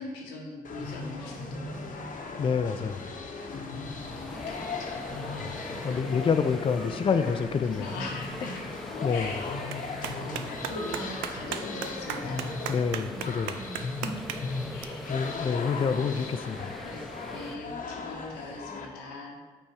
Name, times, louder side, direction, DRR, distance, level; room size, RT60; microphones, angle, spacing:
voice 1, 0.0-2.0 4.2-5.0 5.9-6.0 7.8-8.6 9.1-12.6 13.1-13.2 13.5-14.1 14.7-15.6 16.8-19.4, left 2 dB, 80° left, -1 dB, 1.1 m, -41 dB
sound 1, 0.6-18.9, left 4 dB, 50° left, 0.9 m, -38 dB
sound 2, 1.1-17.6, equal, ahead, 0.7 m, -43 dB
voice 2, 2.4-3.1 5.4-5.6 5.8-7.9 9.0-9.3 12.7-13.5 15.1-16.7, left 6 dB, 30° left, 9 dB, 0.4 m, -27 dB
Clapping, 8.2-14.8, right 8 dB, 80° right, 0.4 m, -40 dB
5.9 x 4.4 x 4.7 m, 1.4 s
hypercardioid pair, 45°, 18 cm